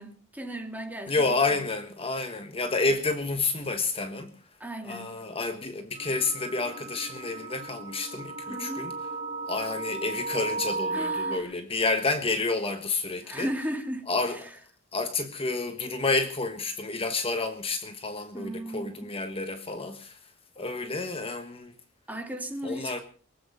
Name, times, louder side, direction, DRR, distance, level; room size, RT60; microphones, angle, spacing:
voice 1, 0.0-1.6 4.6-5.1 8.5-8.9 10.9-11.5 13.2-14.5 18.3-19.1 22.1-23.0, right 1 dB, 10° right, 2.7 m, -36 dB
voice 2, 1.1-4.3 4.8-8.9 9.5-13.5 14.1-14.4 14.9-20.2 20.6-21.7 22.6-23.0, left 3 dB, 30° left, 1.4 m, -29 dB
sound 1, 6.0-11.4, right 3 dB, 35° right, 2.0 m, -35 dB
23.0 x 8.8 x 6.9 m
head